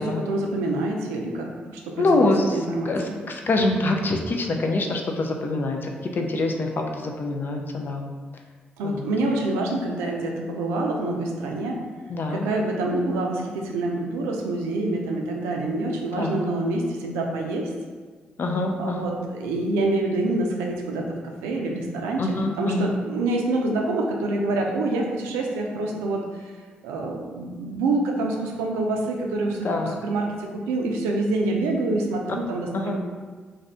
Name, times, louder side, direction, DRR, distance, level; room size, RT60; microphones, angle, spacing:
voice 1, 0.0-3.2 8.8-11.8 12.3-17.7 18.8-21.0 21.4-26.2 26.8-29.7 30.0-33.0, right 2 dB, 90° right, 1 dB, 0.4 m, -26 dB
voice 2, 2.0-8.1 8.8-9.1 12.1-12.5 16.2-16.4 18.4-19.1 22.2-23.0 29.6-30.0 32.7-33.0, left 2 dB, 50° left, 3 dB, 0.4 m, -25 dB
2.6 x 2.5 x 3.3 m, 1.5 s
hypercardioid pair, 45°, 4 cm